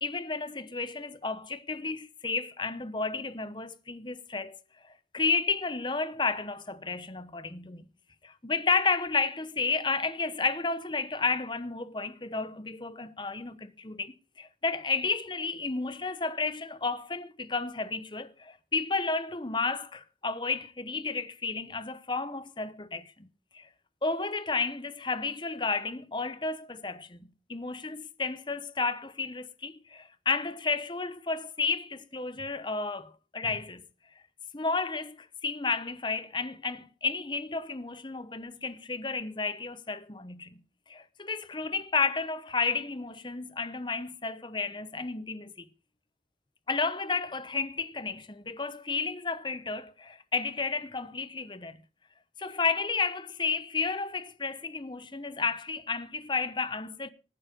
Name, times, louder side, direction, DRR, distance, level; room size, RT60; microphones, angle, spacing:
voice 1, 0.0-4.6 5.1-7.8 8.2-23.3 23.5-23.7 24.0-27.2 27.5-33.8 34.5-40.6 40.9-45.7 46.7-51.8 52.4-57.1, left 4 dB, 25° left, 1.0 m, -32 dB
18.5 x 9.7 x 5.2 m
head